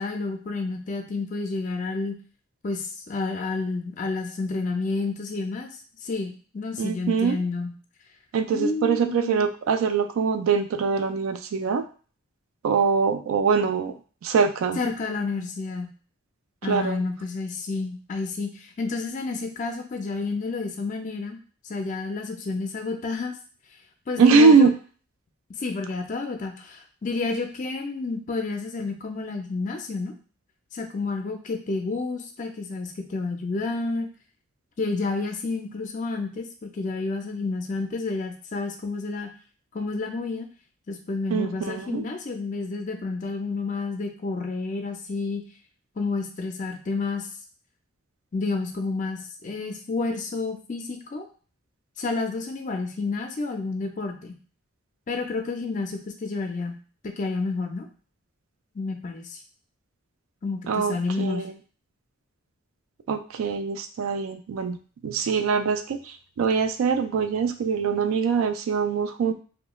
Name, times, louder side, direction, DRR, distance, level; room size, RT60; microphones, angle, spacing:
voice 1, 0.0-2.2 2.6-5.7 6.0-7.7 8.5-9.4 14.8-15.9 16.6-21.4 21.6-23.3 24.1-24.7 25.6-30.1 30.7-34.1 34.8-39.3 39.7-40.5 40.9-45.4 46.0-47.3 48.3-51.3 52.0-54.3 55.1-56.8 57.0-57.9 58.7-59.4 60.4-61.5, left 3 dB, 35° left, 4 dB, 0.4 m, -30 dB
voice 2, 6.8-7.4 8.3-11.8 12.6-13.9 14.2-14.8 16.6-17.0 24.2-24.7 41.3-42.0 60.7-61.4 63.1-64.8 65.0-69.3, right 5 dB, 80° right, 8 dB, 0.3 m, -23 dB
2.3 x 2.1 x 2.9 m, 0.40 s
head